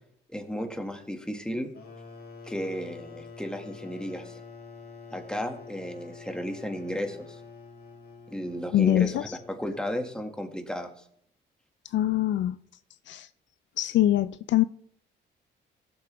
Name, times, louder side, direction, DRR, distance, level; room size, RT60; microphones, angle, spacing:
voice 1, 0.3-1.7 2.4-4.4 5.1-7.4 8.3-10.9, equal, 5° left, 1.9 m, -34 dB
sound 1, 1.7-10.2, left 5 dB, 50° left, 1.8 m, -47 dB
voice 2, 8.7-9.2 11.9-12.6 13.1-13.3 13.8-14.6, left 13 dB, 65° left, 0.4 m, -23 dB
17.0 x 7.1 x 3.4 m
cardioid pair, 90°, 20 cm